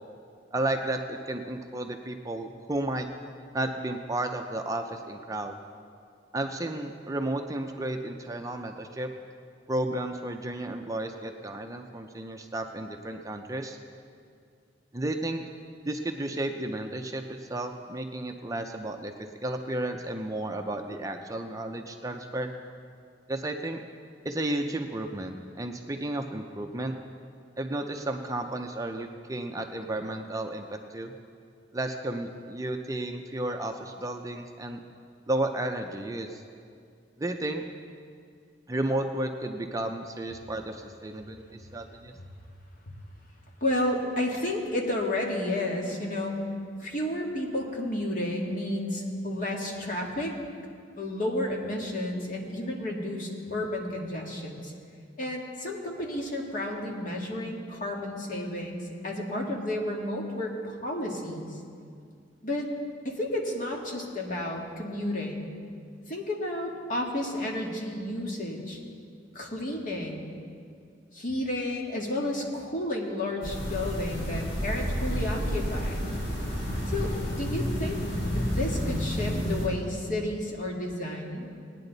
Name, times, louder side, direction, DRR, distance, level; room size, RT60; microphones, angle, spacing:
voice 1, 0.5-3.1 3.5-5.5 6.3-9.1 9.7-13.8 14.9-15.4 15.8-19.1 19.4-22.5 23.3-23.8 24.2-26.9 27.6-31.1 31.7-34.8 35.3-36.4 37.2-37.6 38.7-42.2, right 1 dB, 20° right, 4 dB, 0.5 m, -33 dB
voice 2, 43.6-46.4 46.8-50.3 51.0-54.7 55.2-61.5 62.4-62.7 63.0-65.5 66.1-68.8 69.3-70.3 71.1-76.0 76.9-78.0 78.4-81.5, left 1 dB, 45° left, -1 dB, 1.8 m, -31 dB
sound 1, 73.4-79.7, equal, 70° left, 3.9 m, -30 dB
19.0 x 9.8 x 4.0 m, 2.3 s
head